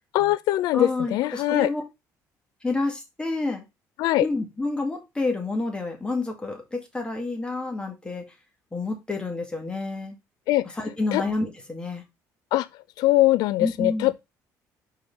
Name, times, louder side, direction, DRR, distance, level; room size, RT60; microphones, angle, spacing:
voice 1, 0.1-1.7 4.0-4.3 10.5-10.6 11.1-11.2 12.5-12.7 13.0-14.2, left 16 dB, 80° left, 0.4 m, -21 dB
voice 2, 0.7-1.8 2.6-3.6 4.2-8.3 8.7-10.2 10.7-12.0 13.6-14.1, left 3 dB, 15° left, 2.2 m, -29 dB
5.2 x 4.7 x 5.4 m
cardioid pair, 110°, 7 cm